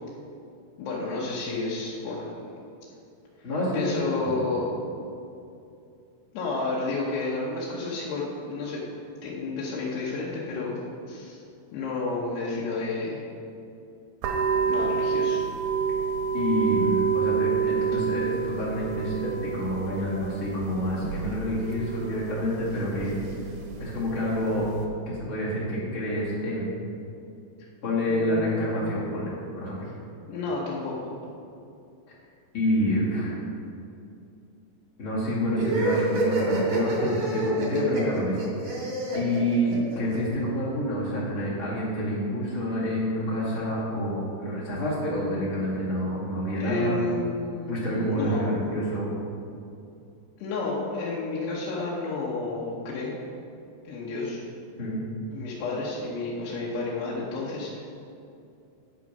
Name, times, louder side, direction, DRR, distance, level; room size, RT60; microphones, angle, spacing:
voice 1, 0.8-2.2 3.7-4.8 6.3-8.8 9.2-10.8 11.1-11.4 11.7-13.2 14.6-15.4 28.1-29.0 30.3-31.1 46.6-48.5 50.4-53.2 53.8-54.4 55.3-57.8, left 3 dB, 75° left, -6 dB, 2.9 m, -31 dB
voice 2, 3.4-4.5 16.3-23.2 23.8-24.7 25.1-26.7 27.8-29.9 32.5-33.4 35.0-38.8 39.1-47.0 47.7-49.1 54.8-55.0, equal, 40° left, -8 dB, 2.3 m, -28 dB
sound 1, 14.2-24.8, right 6 dB, 75° right, 2.2 m, -29 dB
sound 2, 35.5-40.2, right 2 dB, 45° right, 1.6 m, -28 dB
9.5 x 6.4 x 5.3 m, 2.6 s
omnidirectional pair, 5.2 m